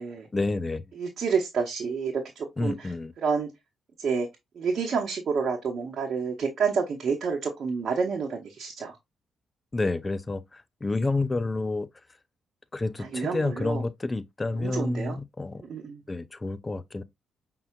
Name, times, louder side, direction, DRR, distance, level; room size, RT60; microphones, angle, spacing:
voice 1, 0.3-0.8 2.6-3.1 9.7-11.9 12.7-15.6 16.1-17.0, left 2 dB, 30° left, 0.5 m, -29 dB
voice 2, 1.0-3.5 4.0-4.3 4.5-9.0 13.0-13.8 14.5-15.2 15.5-16.0, right 5 dB, 60° right, 0.9 m, -29 dB
5.6 x 3.8 x 2.3 m
hypercardioid pair, 40°, 0 cm